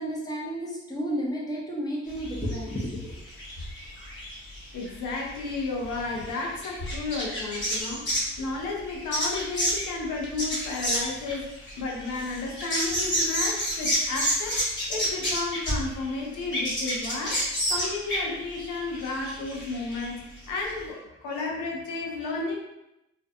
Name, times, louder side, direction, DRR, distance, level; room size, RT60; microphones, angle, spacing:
voice 1, 0.0-3.1, equal, 15° left, -3 dB, 0.7 m, -32 dB
sound 1, 2.1-8.4 8.9-16.1 16.4-20.1 20.4-20.5 20.6-20.7, equal, 40° left, 1.1 m, -30 dB
voice 2, 4.7-17.4 17.7-22.6, left 3 dB, 90° left, -1 dB, 0.6 m, -33 dB
2.5 x 2.2 x 2.5 m, 0.90 s
cardioid pair, 90°, 30 cm